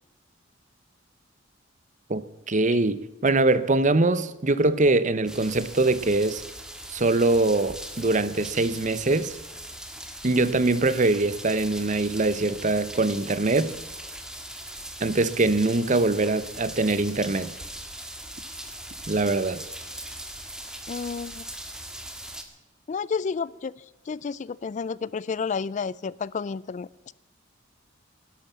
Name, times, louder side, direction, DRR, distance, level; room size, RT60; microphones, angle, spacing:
voice 1, 2.5-6.4 6.9-9.4 10.2-13.7 15.0-17.5 19.1-19.6, right 2 dB, 40° right, 0.8 m, -23 dB
sound 1, 5.3-22.4, right 1 dB, 5° right, 1.6 m, -40 dB
voice 2, 20.9-21.5 22.9-23.7 24.1-26.9, left 5 dB, 40° left, 0.4 m, -31 dB
12.5 x 11.5 x 7.2 m
head